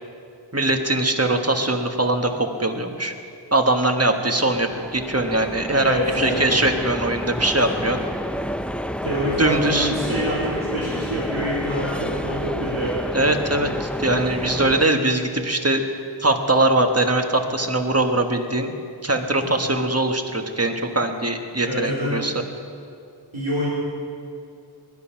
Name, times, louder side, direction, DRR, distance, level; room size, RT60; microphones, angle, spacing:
voice 1, 0.5-3.1 3.5-8.0 9.4-9.9 13.1-15.8 16.2-18.8 19.0-22.3, right 2 dB, 30° right, 5 dB, 1.4 m, -21 dB
sound 1, 4.1-14.8, equal, 5° left, 0.4 m, -29 dB
voice 2, 5.7-6.5 9.0-13.0 19.4-19.7 21.7-22.2 23.3-23.7, equal, 85° right, -7 dB, 3.5 m, -26 dB
20.5 x 11.0 x 5.8 m, 2.4 s
wide cardioid pair, 50°, 46 cm